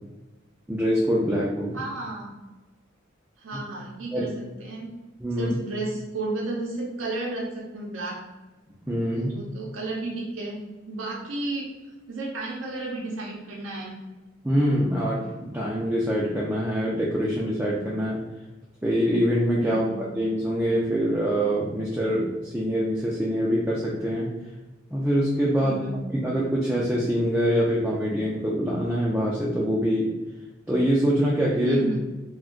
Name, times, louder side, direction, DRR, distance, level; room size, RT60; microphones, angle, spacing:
voice 1, 0.7-1.8 3.5-3.6 4.1-4.3 5.2-5.6 8.9-9.3 14.4-18.2 18.8-24.3 24.9-25.8 26.1-30.1 30.7-31.8, equal, 10° right, -6 dB, 0.4 m, -24 dB
voice 2, 1.7-2.3 3.4-4.9 5.3-8.3 9.1-10.6 10.9-11.7 12.1-14.0 19.6-20.1 25.5-26.1 31.6-32.0, right 2 dB, 80° right, -3 dB, 0.5 m, -32 dB
2.5 x 2.2 x 3.7 m, 1.1 s
head